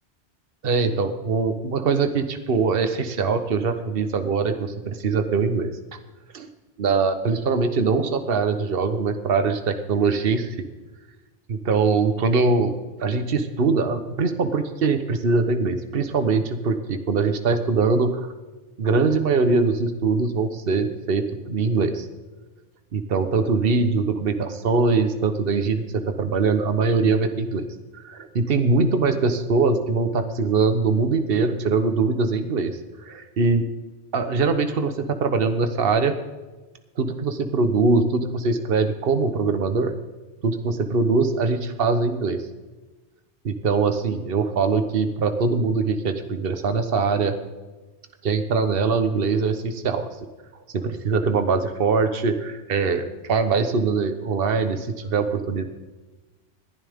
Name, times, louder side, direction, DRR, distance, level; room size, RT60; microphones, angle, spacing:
voice 1, 0.6-5.7 6.3-6.5 6.8-10.5 11.5-12.7 13.0-18.3 18.8-22.1 22.9-27.7 27.9-33.7 34.1-36.1 37.0-39.9 40.4-42.4 43.4-47.4 48.2-50.1 50.7-55.6, right 4 dB, 60° right, 9 dB, 1.2 m, -22 dB
20.5 x 11.0 x 3.6 m, 1.2 s
omnidirectional pair, 1.1 m